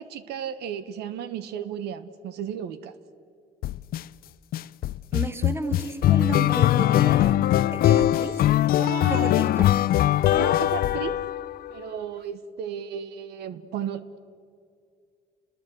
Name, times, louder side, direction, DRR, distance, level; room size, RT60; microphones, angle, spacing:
voice 1, 0.0-2.9 6.8-6.9 8.1-8.2 8.7-9.3 10.3-11.2 11.7-14.2, right 9 dB, 80° right, 12 dB, 1.3 m, -34 dB
sound 1, 3.6-4.0 4.5-11.7, left 13 dB, 60° left, 0.6 m, -21 dB
voice 2, 5.1-7.4 7.7-8.4 9.1-9.7, right 2 dB, 15° right, 9 dB, 1.9 m, -33 dB
30.0 x 21.0 x 8.0 m, 2.3 s
cardioid pair, 110°, 17 cm